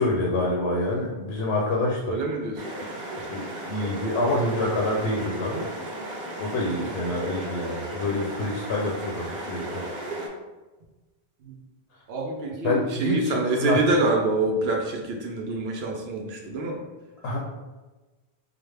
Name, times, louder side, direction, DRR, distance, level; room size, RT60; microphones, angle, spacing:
voice 1, 0.0-2.2 3.3-5.7 6.4-9.8 12.6-13.8 17.2-17.4, left 2 dB, 85° left, -2 dB, 0.9 m, -27 dB
voice 2, 2.1-2.6 6.8-7.0 11.4-11.6 12.1-16.8, right 2 dB, 75° right, 1 dB, 0.8 m, -26 dB
sound 1, 2.6-10.3, right 1 dB, 55° right, 1.1 m, -35 dB
5.0 x 2.1 x 3.2 m, 1.2 s
omnidirectional pair, 1.1 m